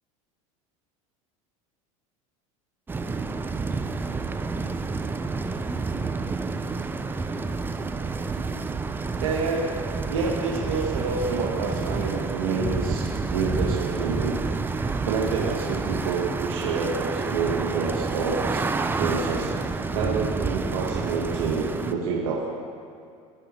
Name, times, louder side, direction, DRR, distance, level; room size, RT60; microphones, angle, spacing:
sound 1, 2.9-21.9, right 4 dB, 10° right, 0.4 m, -29 dB
voice 1, 9.2-9.7 10.1-14.4 15.0-18.6 18.9-19.5 19.9-22.5, right 4 dB, 85° right, -4 dB, 1.2 m, -28 dB
15.5 x 5.6 x 3.0 m, 2.3 s
supercardioid pair, 105°, 17 cm